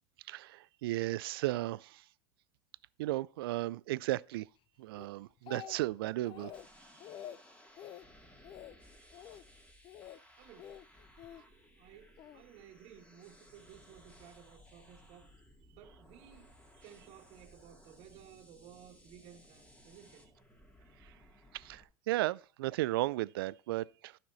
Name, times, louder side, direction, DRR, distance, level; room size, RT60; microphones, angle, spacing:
voice 1, 0.3-2.0 3.0-4.5 4.8-6.5 21.0-21.1 21.5-24.2, right 17 dB, 75° right, 0.4 m, -35 dB
Speech, 5.0-6.0 6.2-6.7 7.0-7.4 7.8-8.0 8.4-8.8 9.1-9.4 9.8-10.2 10.6-11.4 12.2-12.4, left 11 dB, 40° left, 0.6 m, -48 dB
sound 1, 6.5-21.8, equal, 10° left, 2.0 m, -60 dB
voice 2, 10.4-10.8 11.7-15.3 15.7-16.5 16.8-20.3, right 9 dB, 55° right, 1.5 m, -56 dB
12.0 x 5.9 x 4.1 m
hypercardioid pair, 90°, 12 cm